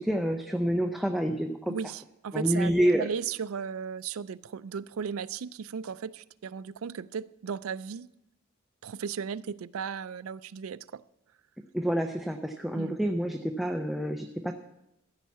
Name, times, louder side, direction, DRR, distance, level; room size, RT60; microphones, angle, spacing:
voice 1, 0.0-1.7 2.3-3.1 11.7-14.5, equal, ahead, 4 dB, 0.5 m, -28 dB
voice 2, 1.7-2.7 3.0-8.1 8.8-11.0 12.7-13.0, right 7 dB, 85° right, 16 dB, 0.4 m, -36 dB
14.0 x 5.6 x 8.3 m, 0.84 s
head